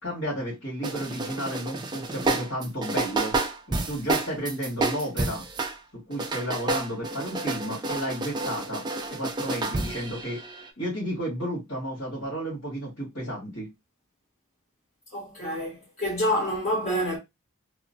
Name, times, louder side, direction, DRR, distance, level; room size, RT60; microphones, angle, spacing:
voice 1, 0.0-3.3 3.7-5.4 5.9-8.8 9.1-10.4 10.8-13.7, equal, 75° left, 1.6 m, -32 dB
sound 1, 0.8-5.8 6.1-10.7, right 3 dB, 20° right, 0.3 m, -30 dB
voice 2, 15.1-17.2, equal, 35° left, 1.0 m, -27 dB
3.0 x 2.0 x 2.6 m
head